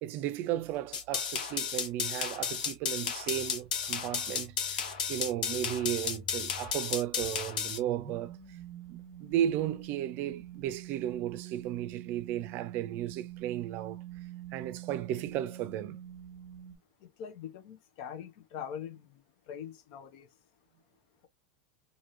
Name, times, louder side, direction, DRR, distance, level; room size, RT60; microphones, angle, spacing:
voice 1, 0.0-8.6 8.9-14.0 14.5-16.0, right 12 dB, 50° right, 0.4 m, -34 dB
sound 1, 0.9-7.8, left 7 dB, 90° left, 1.2 m, -33 dB
sound 2, 3.3-6.7 7.2-16.8, right 9 dB, 15° right, 1.2 m, -47 dB
voice 2, 17.0-19.2 19.5-20.3, left 8 dB, 60° left, 0.9 m, -43 dB
2.9 x 2.7 x 2.7 m
supercardioid pair, 120°, 4 cm